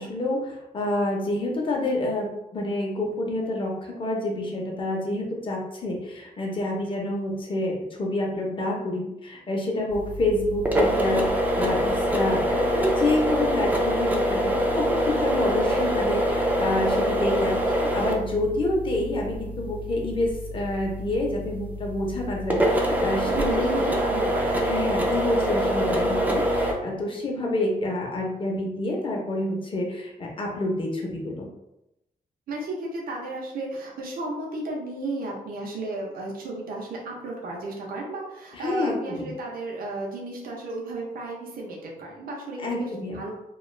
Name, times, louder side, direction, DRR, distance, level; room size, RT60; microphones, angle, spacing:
voice 1, 0.0-23.7 24.6-31.5 38.5-39.3 42.6-43.2, left 1 dB, 35° left, -1 dB, 0.6 m, -28 dB
sound 1, 9.9-26.7, equal, 10° right, 0.3 m, -25 dB
voice 2, 23.3-24.7 32.5-43.3, right 2 dB, 75° right, -2 dB, 0.6 m, -34 dB
2.4 x 2.3 x 3.1 m, 0.87 s
wide cardioid pair, 160°, 15 cm